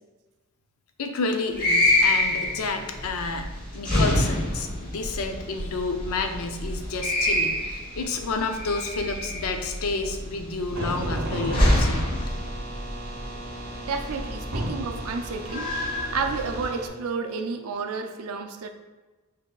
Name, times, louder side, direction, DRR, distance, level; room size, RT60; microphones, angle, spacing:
voice 1, 1.0-3.5 3.7-12.2, left 3 dB, 75° left, 5 dB, 0.4 m, -30 dB
sound 1, 1.5-16.7, left 1 dB, 40° left, 1.0 m, -27 dB
sound 2, 10.7-16.9, right 1 dB, 45° right, 0.8 m, -34 dB
voice 2, 13.8-15.7 16.1-18.7, right 4 dB, 80° right, 5 dB, 0.4 m, -31 dB
6.2 x 2.7 x 2.3 m, 1.2 s
head